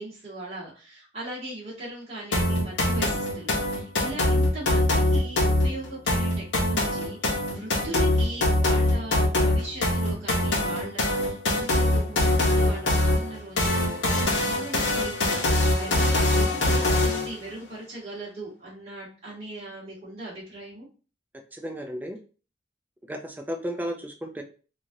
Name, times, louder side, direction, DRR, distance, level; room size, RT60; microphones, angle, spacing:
voice 1, 0.0-20.9, right 1 dB, 35° right, -8 dB, 1.2 m, -39 dB
sound 1, 2.3-17.3, left 1 dB, 85° left, 0.8 m, -23 dB
voice 2, 21.5-22.2 23.1-24.4, equal, 10° right, 4 dB, 0.3 m, -33 dB
3.1 x 2.4 x 2.7 m, 0.36 s
head